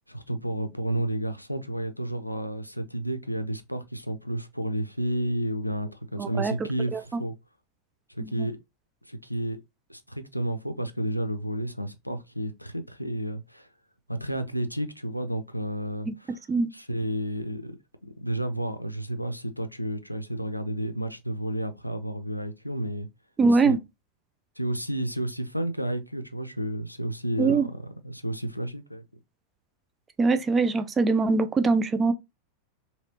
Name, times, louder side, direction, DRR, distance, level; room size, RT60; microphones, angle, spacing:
voice 1, 0.1-7.3 8.1-8.6 9.1-9.6 9.9-13.7 14.1-16.4 16.7-17.8 18.2-23.1 23.6-23.8 24.6-29.0, right 1 dB, 90° left, 0.4 m, -31 dB
voice 2, 6.2-6.5 6.9-7.2 8.2-8.5 16.1-16.2 16.5-16.7 23.4-23.8 27.4-27.7 30.2-32.1, right 4 dB, 20° right, 0.3 m, -23 dB
3.1 x 2.8 x 2.8 m
figure-of-eight pair, 90°, 0 cm